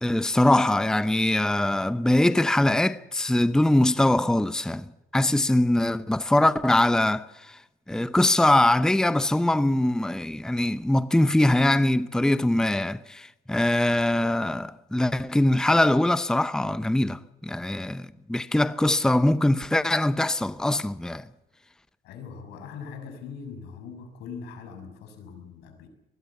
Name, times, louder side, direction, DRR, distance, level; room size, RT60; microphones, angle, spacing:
voice 1, 0.0-4.9 5.1-7.6 7.9-21.3, left 1 dB, 5° left, 0.7 m, -22 dB
voice 2, 22.0-25.9, left 6 dB, 85° left, 6.5 m, -41 dB
24.0 x 20.5 x 7.2 m
cardioid pair, 110°, 17 cm